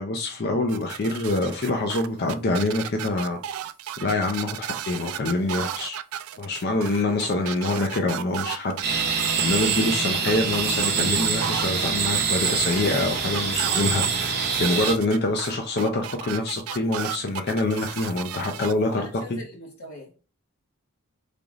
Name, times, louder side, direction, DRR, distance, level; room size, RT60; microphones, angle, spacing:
voice 1, 0.0-3.4 4.0-6.0 6.4-8.8 9.4-19.0 19.3-19.4, left 2 dB, 50° left, 0.5 m, -25 dB
sound 1, 0.7-18.7, right 10 dB, 75° right, 0.3 m, -34 dB
sound 2, 8.8-14.9, right 6 dB, 50° right, 0.7 m, -25 dB
voice 2, 18.8-20.1, left 1 dB, 90° left, 1.5 m, -41 dB
3.9 x 3.4 x 2.4 m
head